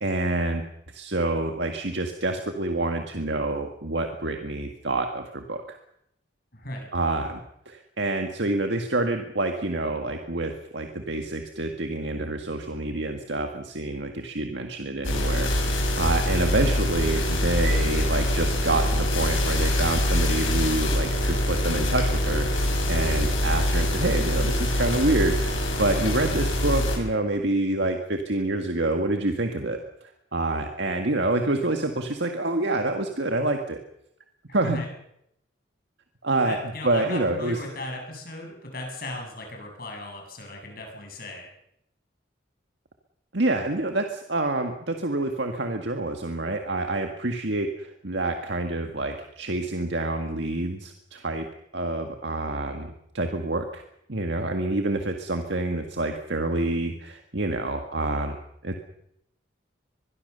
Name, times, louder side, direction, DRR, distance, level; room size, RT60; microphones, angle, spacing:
voice 1, 0.0-5.8 6.9-7.4 7.7-33.8 34.5-34.8 36.2-36.6 36.8-37.6 43.3-51.5 51.7-53.8 54.1-58.4 58.6-58.8, right 2 dB, 65° right, 5 dB, 1.9 m, -27 dB
voice 2, 6.5-6.9 34.5-34.9 36.4-41.5, left 2 dB, 50° left, 2 dB, 7.6 m, -37 dB
sound 1, 15.0-27.0, left 1 dB, 90° left, 6.7 m, -24 dB
23.5 x 22.0 x 6.9 m, 0.77 s
head